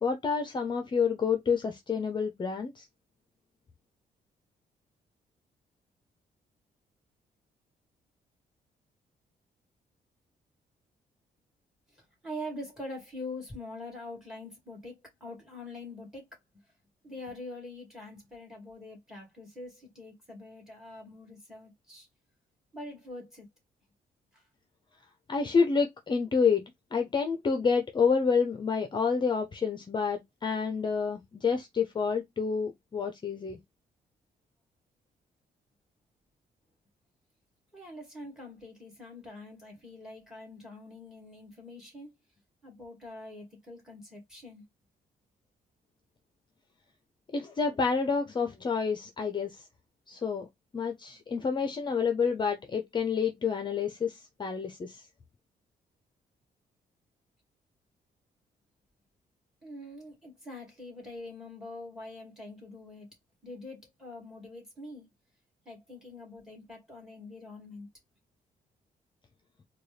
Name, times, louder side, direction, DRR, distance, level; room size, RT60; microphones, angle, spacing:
voice 1, 0.0-2.9 25.3-26.6 26.9-33.6 47.3-49.6 50.1-50.5 50.7-55.0, left 5 dB, 30° left, 0.6 m, -28 dB
voice 2, 11.9-16.3 17.0-22.1 22.7-23.5 24.3-24.5 37.7-42.1 42.6-44.6 59.6-63.1 63.4-65.1 65.6-67.9, left 1 dB, 5° right, 2.3 m, -44 dB
4.1 x 2.3 x 3.3 m
cardioid pair, 120°, 15 cm